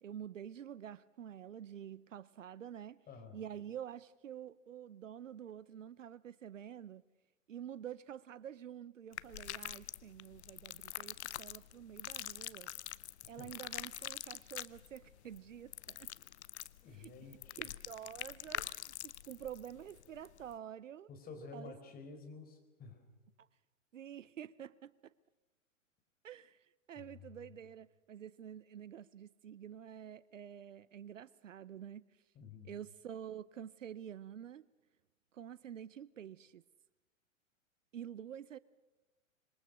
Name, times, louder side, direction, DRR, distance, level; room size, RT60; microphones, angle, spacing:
voice 1, 0.0-3.0 3.3-7.0 7.5-12.7 13.3-16.1 16.9-17.1 17.6-21.1 21.5-21.7 23.4-23.5 23.9-25.1 26.2-32.0 32.6-34.7 35.3-36.6 37.9-38.6, right 9 dB, 65° right, 0.7 m, -48 dB
voice 2, 3.1-3.4 13.4-13.5 16.8-17.8 21.1-23.0 27.0-27.4 32.3-32.7, left 4 dB, 20° left, 4.3 m, -51 dB
sound 1, 9.1-20.5, left 12 dB, 55° left, 0.7 m, -45 dB
26.0 x 23.0 x 6.4 m
figure-of-eight pair, 105°, 40 cm